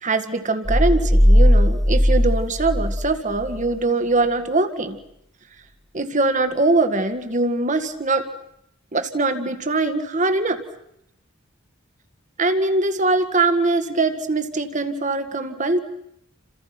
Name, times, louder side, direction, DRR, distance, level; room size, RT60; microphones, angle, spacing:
voice 1, 0.0-5.0 5.9-8.3 8.9-10.6 12.4-15.8, right 3 dB, 40° right, 9 dB, 1.8 m, -22 dB
sound 1, 0.6-3.6, equal, ahead, 1.7 m, -17 dB
29.5 x 27.0 x 6.0 m, 0.78 s
head